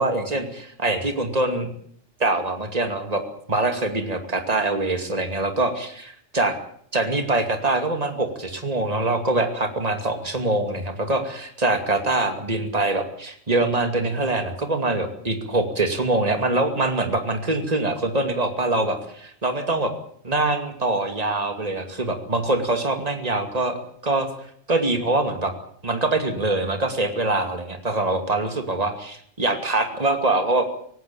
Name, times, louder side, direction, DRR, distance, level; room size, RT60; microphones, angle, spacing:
voice 1, 0.0-1.7 2.2-3.2 3.5-6.6 6.9-19.0 19.4-19.9 20.2-24.3 24.7-25.5 25.8-30.7, right 2 dB, 30° right, 6 dB, 2.6 m, -24 dB
18.5 x 17.0 x 8.8 m, 0.63 s
omnidirectional pair, 1.3 m